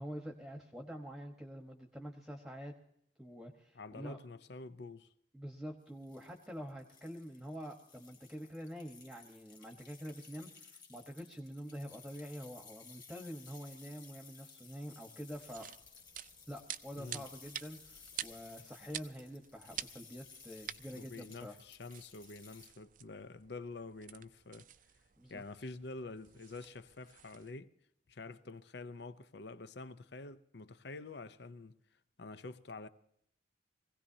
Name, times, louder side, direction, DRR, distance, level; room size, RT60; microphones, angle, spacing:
voice 1, 0.0-2.7 3.2-4.2 5.3-15.7 16.5-21.6 25.2-25.4, equal, 5° right, 1.2 m, -46 dB
voice 2, 3.8-5.1 17.0-17.2 20.9-24.7 25.3-27.7 28.1-31.8 32.2-32.9, left 3 dB, 65° left, 0.7 m, -47 dB
sound 1, 5.9-22.7, left 5 dB, 25° left, 2.3 m, -58 dB
sound 2, 15.3-27.5, right 10 dB, 45° right, 0.5 m, -49 dB
23.5 x 16.5 x 2.8 m
head